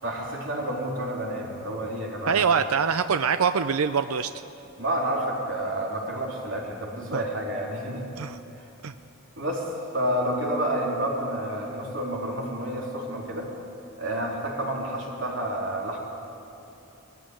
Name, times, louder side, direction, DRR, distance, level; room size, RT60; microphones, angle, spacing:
voice 1, 0.0-2.4 4.8-8.0 9.4-13.5 14.0-16.0, right 1 dB, 60° right, -2 dB, 3.7 m, -29 dB
voice 2, 2.3-4.3 7.1-7.2 8.2-8.4 8.8-8.9, right 6 dB, 85° right, 10 dB, 0.6 m, -24 dB
19.5 x 15.0 x 9.7 m, 3.0 s
head